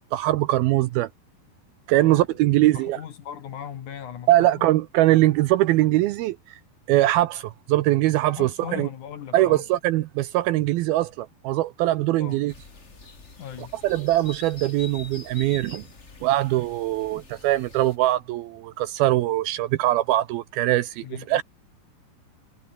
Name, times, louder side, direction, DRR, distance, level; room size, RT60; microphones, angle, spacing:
voice 1, 0.1-1.1 1.9-3.0 4.3-6.6 6.9-8.9 9.3-12.5 13.8-15.8 16.2-21.4, right 16 dB, 75° right, 2.4 m, -22 dB
voice 2, 2.6-4.8 8.3-9.6 12.2-12.4 13.4-13.8 21.0-21.4, left 9 dB, 55° left, 2.7 m, -38 dB
sound 1, 12.5-18.0, left 4 dB, 25° left, 1.5 m, -45 dB
omnidirectional pair, 4.8 m